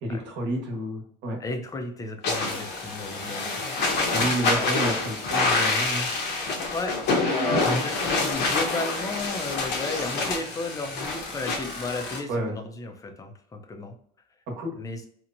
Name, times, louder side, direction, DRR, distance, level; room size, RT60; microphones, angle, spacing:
voice 1, 0.0-1.4 4.1-6.1 7.6-7.8 12.3-12.5 14.6-14.7, right 1 dB, 60° right, 1 dB, 1.1 m, -30 dB
voice 2, 1.4-3.6 4.6-4.7 6.7-6.9 7.4-14.0 14.7-15.0, left 3 dB, 15° left, 4 dB, 0.5 m, -34 dB
sound 1, 2.2-12.2, left 3 dB, 55° left, 0.9 m, -27 dB
2.9 x 2.1 x 2.5 m, 0.62 s
supercardioid pair, 120°, 21 cm